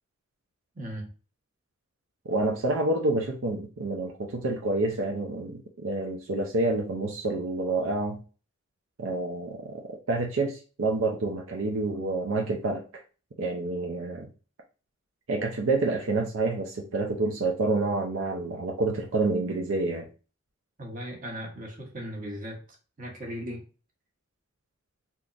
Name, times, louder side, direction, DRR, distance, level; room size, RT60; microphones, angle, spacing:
voice 1, 0.7-1.1 20.8-22.6 23.0-23.6, equal, 40° right, -1 dB, 1.1 m, -37 dB
voice 2, 2.3-8.2 9.0-9.8 10.1-12.8 13.4-14.3 15.3-20.1, right 2 dB, 80° right, 1 dB, 0.6 m, -28 dB
3.6 x 2.9 x 2.5 m, 0.35 s
head